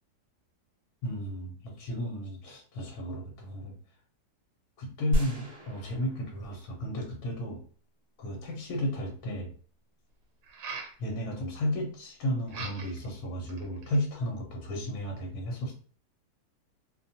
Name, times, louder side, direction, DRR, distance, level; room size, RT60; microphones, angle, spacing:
voice 1, 1.0-3.7 4.8-7.6 8.2-9.5 11.0-15.7, equal, 65° left, 0 dB, 1.1 m, -33 dB
sound 1, 5.1-7.4, equal, 35° right, 0.6 m, -34 dB
sound 2, 8.8-8.9 10.4-11.0 12.5-13.1 13.5-14.1, right 4 dB, 80° right, 1.2 m, -41 dB
2.7 x 2.2 x 2.7 m, 0.42 s
omnidirectional pair, 1.9 m